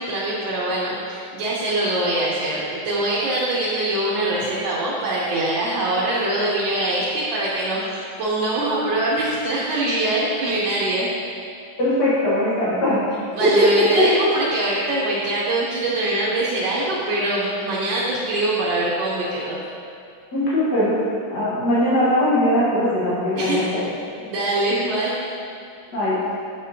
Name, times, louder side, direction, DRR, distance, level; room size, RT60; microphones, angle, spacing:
voice 1, 0.0-11.1 13.3-19.6 23.4-23.6 24.2-25.2, right 2 dB, 70° right, -8 dB, 1.6 m, -23 dB
voice 2, 11.8-13.0 13.6-13.7 20.3-20.9 21.3-23.8 25.9-26.2, left 1 dB, 55° left, -11 dB, 1.8 m, -20 dB
6.8 x 5.9 x 2.8 m, 2.4 s
omnidirectional pair, 2.3 m